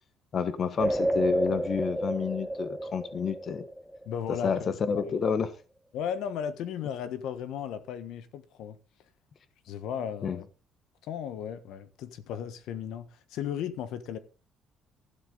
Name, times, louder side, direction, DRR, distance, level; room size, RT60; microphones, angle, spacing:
voice 1, 0.3-3.6 4.4-5.5 10.2-10.4, left 6 dB, 45° left, 1.2 m, -29 dB
sound 1, 0.8-4.3, right 1 dB, ahead, 1.2 m, -30 dB
voice 2, 4.0-5.2 5.9-8.8 9.6-10.4 11.1-14.2, left 8 dB, 80° left, 1.3 m, -35 dB
12.5 x 11.5 x 4.0 m
cardioid pair, 110°, 0 cm